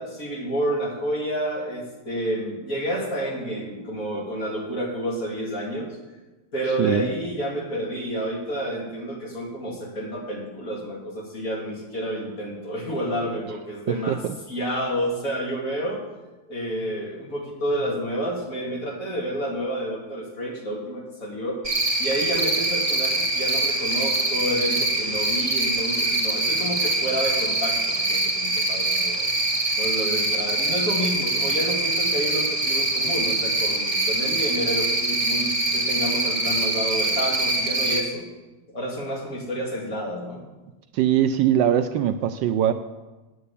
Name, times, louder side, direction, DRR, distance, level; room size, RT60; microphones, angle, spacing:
voice 1, 0.0-6.0 6.5-14.2 14.5-16.0 16.5-21.6 22.0-29.3 29.8-38.3 38.7-40.4, equal, 40° left, -1 dB, 2.9 m, -29 dB
voice 2, 13.9-14.3 40.9-42.7, right 10 dB, 75° right, 10 dB, 1.2 m, -21 dB
Cricket, 21.6-38.0, right 2 dB, 20° right, 1.8 m, -24 dB
9.6 x 8.0 x 8.4 m, 1.1 s
omnidirectional pair, 2.2 m